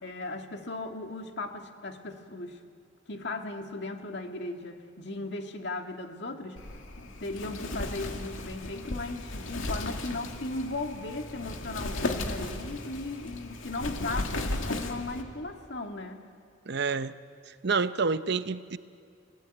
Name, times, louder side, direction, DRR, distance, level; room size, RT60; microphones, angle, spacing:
voice 1, 0.0-2.6 3.1-6.6 7.0-16.2, left 2 dB, 60° left, 2.0 m, -37 dB
Wind, 6.6-15.2, left 2 dB, 90° left, 2.2 m, -35 dB
voice 2, 16.7-17.1 17.6-18.8, right 4 dB, 55° right, 0.7 m, -28 dB
29.5 x 18.0 x 9.2 m
head